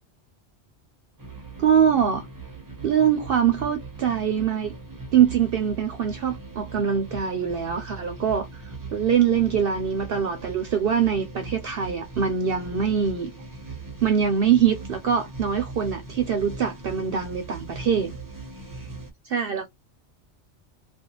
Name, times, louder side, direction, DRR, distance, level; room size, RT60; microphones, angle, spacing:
sound 1, 1.2-19.1, right 3 dB, 25° right, 0.6 m, -40 dB
voice 1, 1.6-2.3 2.8-4.7 5.1-8.6 8.9-13.3 14.0-18.1 19.2-19.7, right 8 dB, 60° right, 0.7 m, -23 dB
2.5 x 2.3 x 2.9 m
omnidirectional pair, 1.2 m